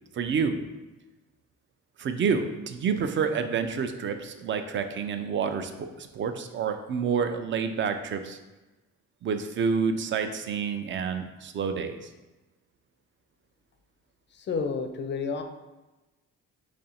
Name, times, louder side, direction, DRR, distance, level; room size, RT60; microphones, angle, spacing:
voice 1, 0.1-0.6 2.0-8.4 9.2-12.0, right 6 dB, 40° right, 8 dB, 0.4 m, -28 dB
voice 2, 14.3-15.4, left 5 dB, 40° left, 7 dB, 0.4 m, -30 dB
3.0 x 2.5 x 4.2 m, 1.1 s
cardioid pair, 90°, 30 cm